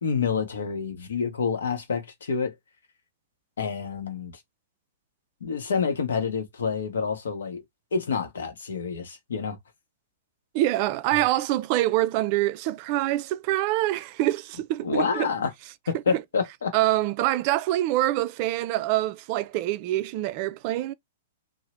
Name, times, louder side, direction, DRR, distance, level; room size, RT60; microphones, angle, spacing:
voice 1, 0.0-2.5 3.6-4.3 5.4-7.6 7.9-9.6 14.8-15.5 15.9-16.7, left 5 dB, 70° left, 0.8 m, -28 dB
voice 2, 10.5-15.3 16.1-16.2 16.7-20.9, right 15 dB, 45° right, 0.3 m, -25 dB
2.8 x 2.0 x 2.9 m
figure-of-eight pair, 105°, 0 cm